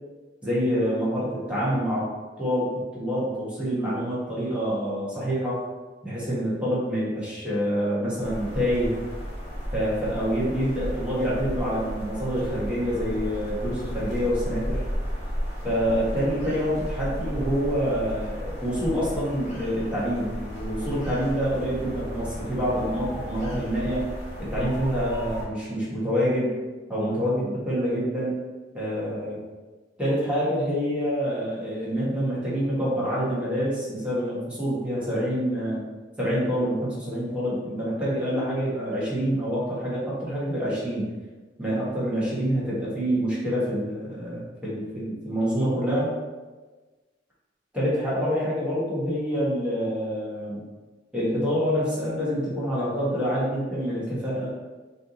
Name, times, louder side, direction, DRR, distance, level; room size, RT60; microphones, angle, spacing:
voice 1, 0.4-2.1 2.4-5.6 6.0-9.0 9.7-14.8 15.6-24.1 24.4-26.5 26.9-28.4 28.7-29.4 30.0-35.8 36.2-41.1 41.6-46.1 47.7-50.6 51.1-54.5, equal, 5° right, -8 dB, 1.2 m, -26 dB
sound 1, 8.2-25.5, equal, 40° left, 1.3 m, -34 dB
3.3 x 2.7 x 3.8 m, 1.3 s
head